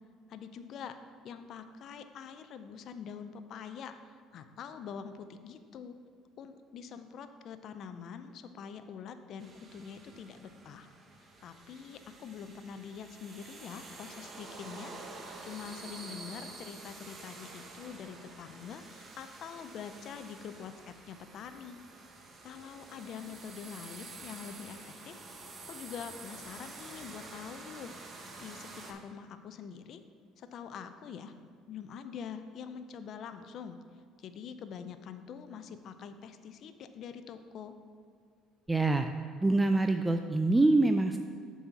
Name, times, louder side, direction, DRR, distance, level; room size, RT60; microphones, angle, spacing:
voice 1, 0.3-1.0 1.2-4.0 4.3-5.9 6.4-10.9 11.4-14.9 15.4-21.8 22.4-25.2 25.7-30.0 30.4-31.3 31.7-33.8 34.2-37.7, left 7 dB, 55° left, 9 dB, 0.4 m, -45 dB
sound 1, 9.4-28.9, right 3 dB, 35° right, 1.0 m, -49 dB
voice 2, 38.7-39.1 39.4-41.2, right 2 dB, 10° right, 6 dB, 0.3 m, -25 dB
7.2 x 4.1 x 5.9 m, 2.1 s
supercardioid pair, 90°, 0 cm